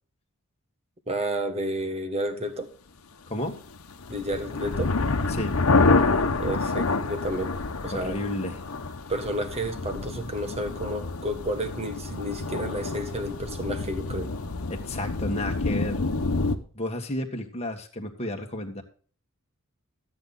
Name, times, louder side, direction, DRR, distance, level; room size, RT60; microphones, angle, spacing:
voice 1, 1.1-2.7 4.1-4.9 6.4-7.5 7.8-8.2 9.1-14.3, right 1 dB, 30° right, 8 dB, 1.5 m, -31 dB
voice 2, 3.3-3.6 5.3-5.6 7.9-8.6 14.7-16.0 16.7-18.8, left 1 dB, 30° left, 3 dB, 1.7 m, -32 dB
sound 1, 3.8-16.6, left 3 dB, 75° left, 1.0 m, -27 dB
13.0 x 8.6 x 4.0 m, 0.43 s
head